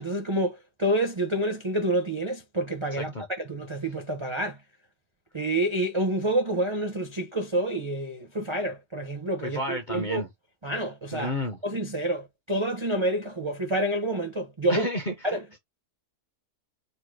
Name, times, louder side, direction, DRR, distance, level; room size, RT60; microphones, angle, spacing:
voice 1, 0.0-3.1 3.4-4.6 5.3-10.2 10.6-11.3 11.6-14.9 15.2-15.4, right 1 dB, 35° right, 0.4 m, -28 dB
voice 2, 9.4-10.3 11.1-11.6 14.7-15.6, left 1 dB, 40° left, 0.7 m, -31 dB
4.4 x 2.1 x 4.6 m
omnidirectional pair, 1.7 m